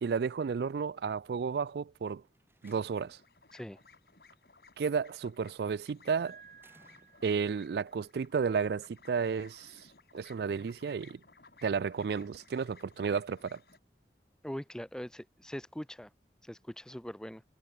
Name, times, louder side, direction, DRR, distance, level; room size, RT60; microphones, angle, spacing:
voice 1, 0.0-2.2 2.6-3.2 4.8-6.4 7.2-9.7 10.1-11.2 11.6-13.6, right 6 dB, 65° right, 0.3 m, -32 dB
Slam, 2.2-3.3 4.8-5.2 6.6-7.5, right 2 dB, 15° right, 2.4 m, -65 dB
sound 1, 2.6-13.8, left 4 dB, 60° left, 2.5 m, -60 dB
Piano, 6.2-8.2, right 6 dB, 50° right, 1.7 m, -57 dB
voice 2, 14.4-16.1 16.4-17.4, equal, 5° left, 0.4 m, -42 dB
head